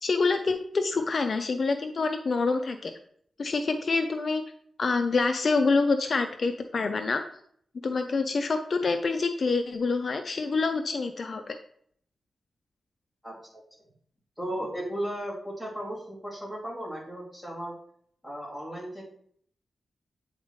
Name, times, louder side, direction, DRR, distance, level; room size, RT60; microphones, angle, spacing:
voice 1, 0.0-2.9 3.4-4.4 4.8-7.2 7.8-11.6, left 4 dB, 50° left, 6 dB, 0.5 m, -26 dB
voice 2, 13.2-13.6 14.4-17.7 18.2-19.0, right 1 dB, 5° right, -6 dB, 2.7 m, -35 dB
8.7 x 4.1 x 3.1 m, 0.63 s
wide cardioid pair, 110°, 0 cm